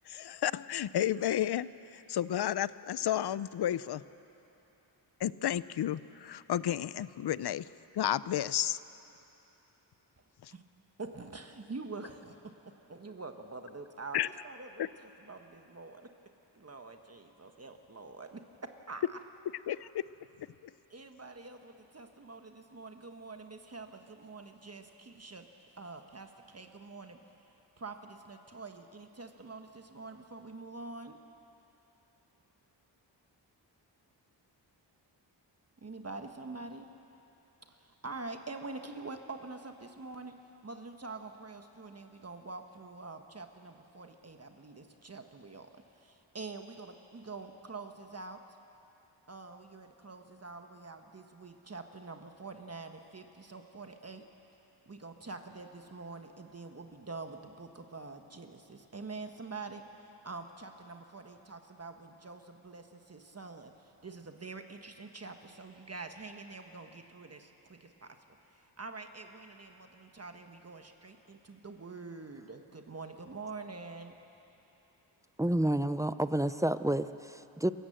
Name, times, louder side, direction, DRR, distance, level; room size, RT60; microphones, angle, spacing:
voice 1, 0.0-4.0 5.2-7.7 7.9-8.8 10.4-10.5 14.1-14.3 14.8-14.9 19.7-20.0 20.4-20.7, left 11 dB, 60° left, 18 dB, 0.6 m, -32 dB
voice 2, 11.0-12.4 12.6-16.1 16.5-19.0 20.9-25.5 25.8-31.2 35.8-36.9 37.7-48.4 49.3-54.3 54.9-74.1, right 3 dB, 35° right, 5 dB, 1.2 m, -46 dB
voice 3, 75.4-77.7, right 1 dB, 10° right, 13 dB, 0.5 m, -29 dB
27.0 x 15.0 x 7.8 m, 3.0 s
wide cardioid pair, 95°, 44 cm